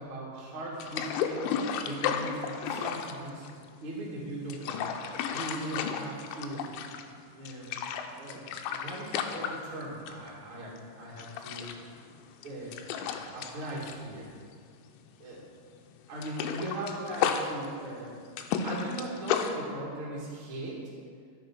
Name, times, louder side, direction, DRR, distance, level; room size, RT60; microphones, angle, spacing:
voice 1, 0.0-1.5 1.8-3.5 3.8-5.0 5.3-6.7 7.3-7.7 8.2-11.7 12.4-14.3 15.2-15.4 16.1-18.2 18.6-20.9, right 1 dB, 45° right, -5 dB, 1.7 m, -39 dB
sound 1, 0.8-3.9 4.3-7.2 7.5-10.3 10.6-10.8 11.2-15.0 15.2-15.4 15.8-19.5, left 7 dB, 80° left, 2.7 m, -33 dB
13.0 x 6.7 x 6.0 m, 2.1 s
omnidirectional pair, 5.8 m